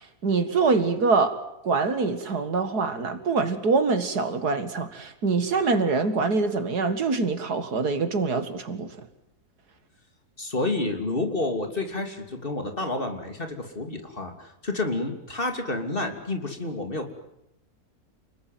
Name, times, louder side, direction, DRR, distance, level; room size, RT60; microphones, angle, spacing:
voice 1, 0.2-1.4 1.6-8.9, right 4 dB, 85° right, 2.5 m, -24 dB
voice 2, 10.4-17.1, left 2 dB, 35° left, 3.1 m, -29 dB
29.5 x 20.5 x 9.4 m
omnidirectional pair, 1.6 m